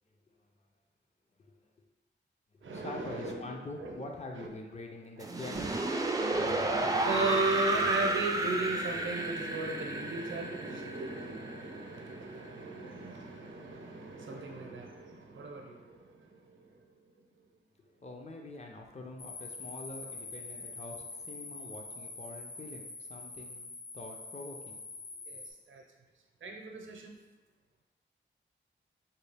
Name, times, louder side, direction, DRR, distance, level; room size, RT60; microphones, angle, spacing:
voice 1, 0.1-0.4 1.4-1.7 2.5-5.8 17.8-25.4, left 2 dB, 35° left, 1 dB, 0.6 m, -45 dB
voice 2, 2.6-3.4 3.8-4.0 4.4-4.5 6.2-16.4 25.3-25.4 25.7-25.8 26.4-27.1, right 3 dB, 85° right, 1 dB, 0.6 m, -36 dB
sound 1, 5.2-12.1, right 2 dB, 20° right, 0.3 m, -32 dB
sound 2, 19.2-25.5, left 3 dB, 75° left, 0.6 m, -45 dB
4.1 x 2.3 x 3.3 m, 1.3 s
wide cardioid pair, 90°, 20 cm